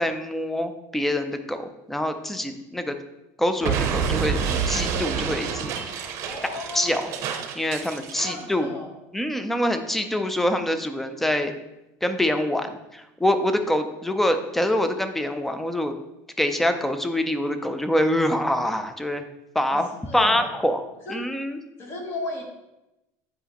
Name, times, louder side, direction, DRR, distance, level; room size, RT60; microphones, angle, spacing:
voice 1, 0.0-3.0 3.4-6.1 6.7-7.1 7.6-8.7 9.1-11.5 12.0-15.9 16.4-19.2 19.5-20.8 21.1-21.6, left 1 dB, 5° left, 8 dB, 0.4 m, -25 dB
Explosion, 3.6-8.4, right 7 dB, 45° right, 0.7 m, -28 dB
voice 2, 6.2-6.9 8.2-8.9 19.7-20.5 21.0-21.3 21.8-22.4, left 2 dB, 35° left, 2 dB, 1.1 m, -35 dB
7.9 x 5.0 x 2.9 m, 0.95 s
cardioid pair, 170°, 7 cm